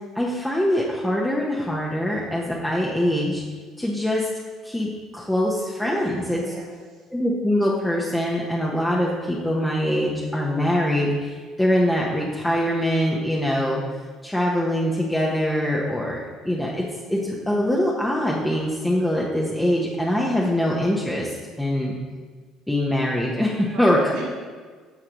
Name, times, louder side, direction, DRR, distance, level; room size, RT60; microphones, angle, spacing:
voice 1, 0.1-3.4 3.8-4.3 4.6-6.4 7.1-13.8 14.2-22.0 22.7-24.1, left 1 dB, 5° left, -4 dB, 1.2 m, -23 dB
voice 2, 6.3-7.0 23.7-24.2, right 3 dB, 70° right, -7 dB, 1.9 m, -37 dB
9.8 x 6.4 x 3.1 m, 1.5 s
hypercardioid pair, 65°, 0 cm